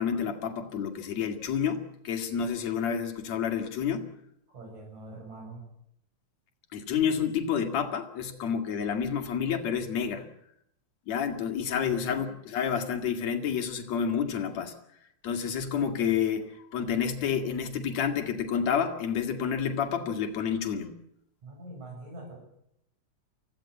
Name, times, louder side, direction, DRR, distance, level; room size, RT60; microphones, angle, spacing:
voice 1, 0.0-4.1 6.7-10.2 11.1-14.7 15.2-20.9, left 7 dB, 65° left, 5 dB, 3.4 m, -29 dB
voice 2, 4.5-5.7 11.9-12.3 21.4-22.4, right 2 dB, 75° right, 3 dB, 8.6 m, -44 dB
25.0 x 16.0 x 8.7 m, 0.75 s
omnidirectional pair, 3.3 m